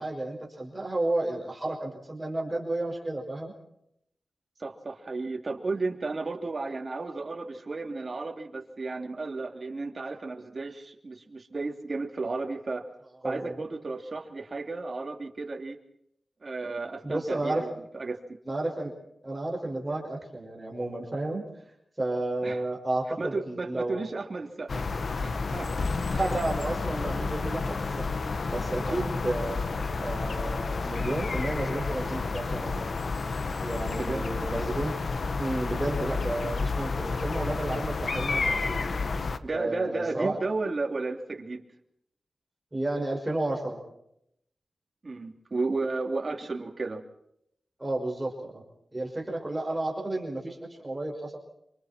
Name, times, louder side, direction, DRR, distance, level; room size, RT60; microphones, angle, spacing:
voice 1, 0.0-3.5 13.2-13.6 17.0-17.7 18.5-18.9 19.2-21.5 22.0-24.0 26.1-28.1 28.5-29.6 30.0-32.8 33.6-34.9 35.4-38.8 39.5-40.4 42.7-43.8 47.8-48.6 48.9-51.4, right 2 dB, 20° right, 1 dB, 5.6 m, -32 dB
voice 2, 4.6-12.8 13.2-15.8 16.4-18.2 22.4-22.6 23.2-24.8 25.2-26.2 28.9-29.0 34.0-34.3 39.4-41.6 45.0-47.0, right 3 dB, 45° right, 3 dB, 3.1 m, -33 dB
sound 1, 24.7-39.4, left 4 dB, 60° left, 1.2 m, -30 dB
27.5 x 27.0 x 4.5 m, 0.76 s
wide cardioid pair, 100°, 0 cm